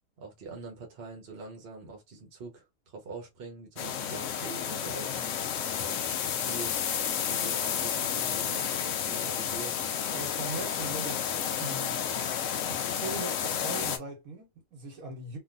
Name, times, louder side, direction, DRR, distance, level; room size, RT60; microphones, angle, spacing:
voice 1, 0.2-5.1 5.8-6.8 7.2-9.8, right 4 dB, 50° right, 1.1 m, -44 dB
sound 1, 3.8-14.0, left 8 dB, 70° left, 0.9 m, -31 dB
voice 2, 10.1-12.0 12.7-15.4, right 3 dB, 85° right, 1.5 m, -40 dB
3.1 x 2.5 x 2.5 m
omnidirectional pair, 1.5 m